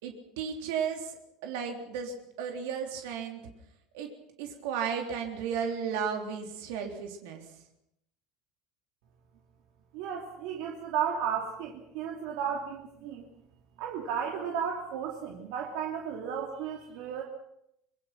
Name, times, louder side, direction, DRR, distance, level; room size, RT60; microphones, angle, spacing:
voice 1, 0.0-3.4 3.9-4.1 4.4-7.4, right 7 dB, 85° right, 3 dB, 3.5 m, -34 dB
voice 2, 9.9-13.2 13.8-17.2, right 8 dB, 65° right, 1 dB, 2.9 m, -34 dB
25.0 x 22.0 x 6.0 m, 0.79 s
cardioid pair, 160°, 0 cm